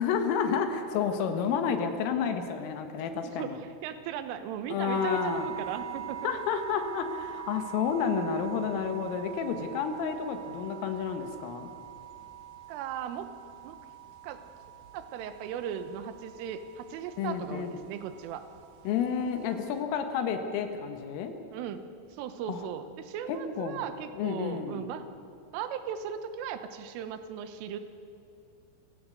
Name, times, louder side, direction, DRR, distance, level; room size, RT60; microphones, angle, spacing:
voice 1, 0.0-3.6 4.7-5.5 6.2-11.7 17.2-17.8 18.9-21.3 22.5-22.6 23.3-23.8 24.2-24.9, left 7 dB, 85° left, 6 dB, 4.1 m, -30 dB
voice 2, 3.2-6.4 12.7-13.3 13.6-13.8 14.2-14.4 14.9-18.5 21.5-21.8 22.2-25.1 25.5-27.8, right 8 dB, 85° right, 10 dB, 3.6 m, -37 dB
sound 1, 4.9-19.8, right 11 dB, 65° right, 2.2 m, -44 dB
27.5 x 17.0 x 6.5 m, 2.6 s
omnidirectional pair, 5.7 m